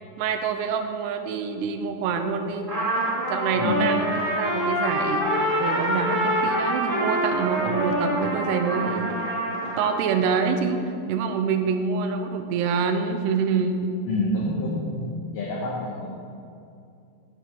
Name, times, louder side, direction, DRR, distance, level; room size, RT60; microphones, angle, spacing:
voice 1, 0.2-2.7 3.3-9.2 9.6-13.9, right 5 dB, 85° right, 6 dB, 2.8 m, -26 dB
Trumpet, 2.7-9.9, equal, 25° right, 1.1 m, -25 dB
voice 2, 3.5-3.8 14.0-16.2, left 2 dB, 65° left, -5 dB, 2.3 m, -28 dB
9.9 x 4.9 x 7.2 m, 2.5 s
omnidirectional pair, 4.9 m